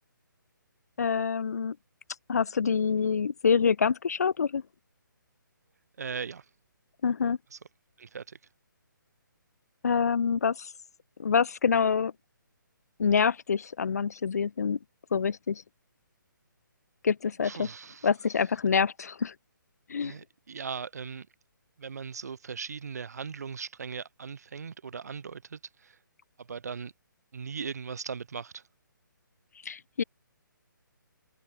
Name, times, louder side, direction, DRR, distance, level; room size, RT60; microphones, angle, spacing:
voice 1, 1.0-1.8 2.3-4.6 7.0-7.4 9.8-10.7 11.2-12.1 13.0-14.8 15.1-15.6 17.0-17.7 18.0-19.3 19.9-20.1 29.6-30.0, left 6 dB, 50° left, 1.5 m, -26 dB
voice 2, 6.0-6.4 8.0-8.4 17.4-18.1 20.0-21.3 21.8-25.9 26.4-26.9 27.3-28.6, right 6 dB, 50° right, 3.4 m, -39 dB
figure-of-eight pair, 140°, 11 cm